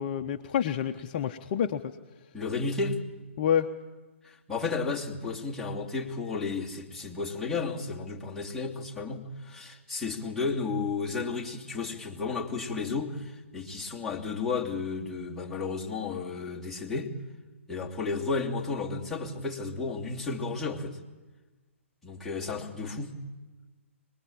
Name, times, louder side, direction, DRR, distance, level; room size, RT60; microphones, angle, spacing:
voice 1, 0.0-2.0 3.4-3.7, left 9 dB, 40° left, 7 dB, 1.0 m, -28 dB
voice 2, 2.3-3.0 4.2-17.1 17.7-21.0 22.0-23.1, left 4 dB, 5° left, -5 dB, 3.0 m, -33 dB
24.0 x 21.0 x 9.0 m, 1.2 s
figure-of-eight pair, 135°, 7 cm